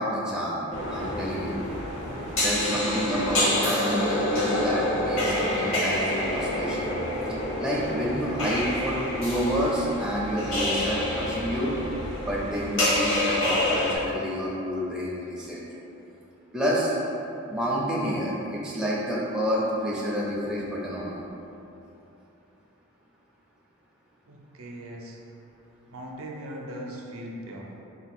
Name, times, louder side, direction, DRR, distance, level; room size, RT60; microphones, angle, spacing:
voice 1, 0.0-1.6 2.4-6.9 7.6-11.8 12.2-15.6 16.5-16.9 17.5-21.3, equal, 5° right, -7 dB, 0.4 m, -29 dB
sound 1, 0.7-14.0, left 1 dB, 65° left, 1.1 m, -27 dB
voice 2, 24.3-25.2 25.9-27.7, equal, 75° right, -1 dB, 0.5 m, -39 dB
4.0 x 2.3 x 4.3 m, 2.9 s
head